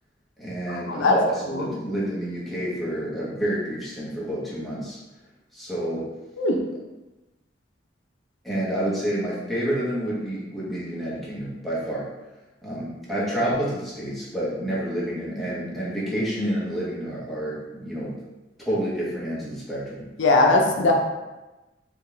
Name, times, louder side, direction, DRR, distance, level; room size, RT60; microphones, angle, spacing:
voice 1, 0.4-5.0 5.5-6.1 8.4-12.1 12.6-18.2 18.7-20.1, right 1 dB, ahead, -8 dB, 0.9 m, -29 dB
voice 2, 20.2-20.9, left 3 dB, 75° left, 1 dB, 0.5 m, -19 dB
3.9 x 2.3 x 3.3 m, 1.1 s
head